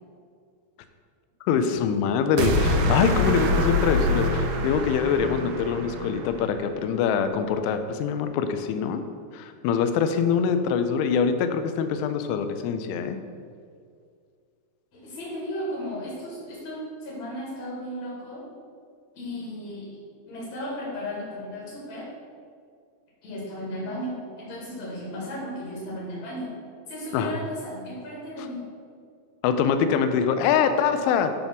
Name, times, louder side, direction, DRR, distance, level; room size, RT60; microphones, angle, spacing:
voice 1, 1.5-9.0 9.3-13.2 27.1-27.3 29.4-31.3, left 7 dB, 85° left, 8 dB, 3.0 m, -24 dB
sound 1, 2.4-6.6, left 1 dB, 85° right, 3.2 m, -25 dB
voice 2, 14.9-18.5 19.1-19.9 20.2-22.1 23.2-26.6 26.9-28.7, equal, 50° left, -7 dB, 2.3 m, -35 dB
9.4 x 3.5 x 5.9 m, 2.2 s
omnidirectional pair, 5.4 m